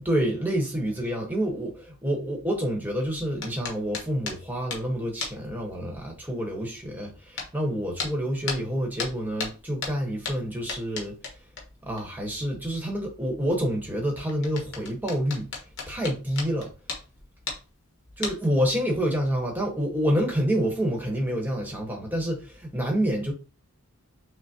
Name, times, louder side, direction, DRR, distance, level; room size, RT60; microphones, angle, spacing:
voice 1, 0.0-11.2 11.9-15.5 15.9-16.7 18.2-23.3, equal, 10° right, 1.0 m, -28 dB
sound 1, 3.4-4.9 5.2-5.5 5.9-6.0 7.4-7.5 8.0-8.2 8.4-12.0 12.3-12.4 13.4-17.7 18.1-18.6 19.3-19.4 19.9-20.1, left 5 dB, 55° left, 1.1 m, -36 dB
6.0 x 2.0 x 2.7 m
head